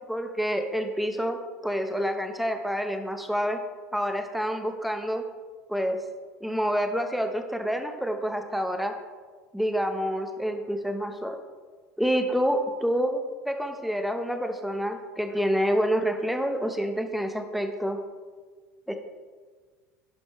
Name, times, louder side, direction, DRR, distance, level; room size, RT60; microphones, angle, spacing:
voice 1, 0.1-3.6 3.9-5.2 5.7-6.0 6.4-9.0 9.5-11.4 12.0-18.0 18.9-19.0, equal, ahead, 6 dB, 1.1 m, -28 dB
11.0 x 10.5 x 3.3 m, 1.4 s
figure-of-eight pair, 70°, 8 cm